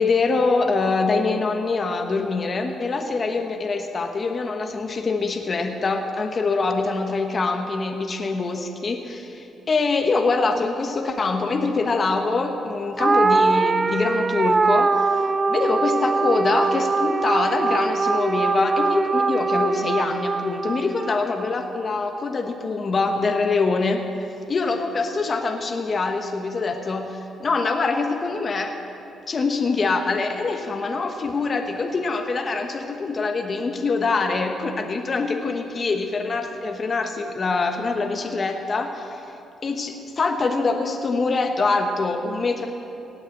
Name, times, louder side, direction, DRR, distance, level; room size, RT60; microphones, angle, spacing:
voice 1, 0.0-15.2 15.5-24.0 24.5-28.7 29.3-39.2 39.6-42.7, left 3 dB, 40° left, 4 dB, 1.1 m, -24 dB
sound 1, 13.0-21.6, right 4 dB, 30° right, 0.4 m, -22 dB
17.5 x 6.6 x 9.1 m, 2.9 s
cardioid pair, 90°, 0 cm